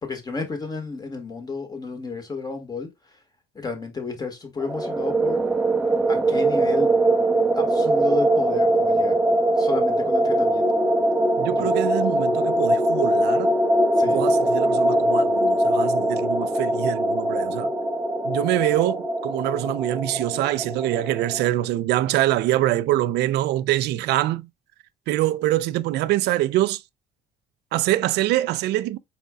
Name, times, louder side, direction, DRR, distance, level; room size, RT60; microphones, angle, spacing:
voice 1, 0.0-2.9 3.6-5.4 6.1-6.9 7.6-9.2 9.5-10.7 11.6-11.7 14.0-14.2, left 4 dB, 25° left, 1.7 m, -31 dB
sound 1, 4.6-21.5, right 1 dB, 10° right, 0.8 m, -22 dB
voice 2, 11.4-13.5 14.1-17.7 18.2-24.5 25.1-26.8 27.7-29.0, right 15 dB, 80° right, 0.5 m, -24 dB
5.0 x 4.2 x 2.2 m
cardioid pair, 110°, 17 cm